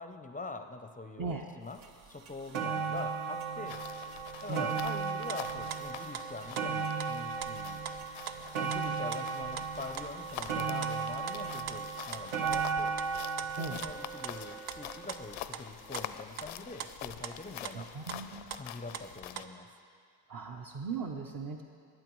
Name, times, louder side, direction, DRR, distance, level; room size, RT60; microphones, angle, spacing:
voice 1, 0.0-1.8 2.1-3.8 4.4-7.8 8.6-12.9 13.6-17.9 18.5-19.7, left 3 dB, 15° left, 7 dB, 0.5 m, -44 dB
sound 1, 1.8-1.9 2.3-15.4 16.2-16.3, right 6 dB, 70° right, 1.2 m, -36 dB
sound 2, 3.7-19.5, left 11 dB, 70° left, 0.6 m, -46 dB
sound 3, 5.3-8.4 8.7-8.8 9.1-13.1 13.4-13.6 13.8-14.0 14.2-14.8 15.1-18.2 18.5-19.5, right 9 dB, 90° right, 0.7 m, -43 dB
voice 2, 17.7-18.5 20.3-21.6, right 4 dB, 45° right, 0 dB, 0.8 m, -38 dB
20.0 x 8.8 x 3.1 m, 2.3 s
cardioid pair, 95°, 48 cm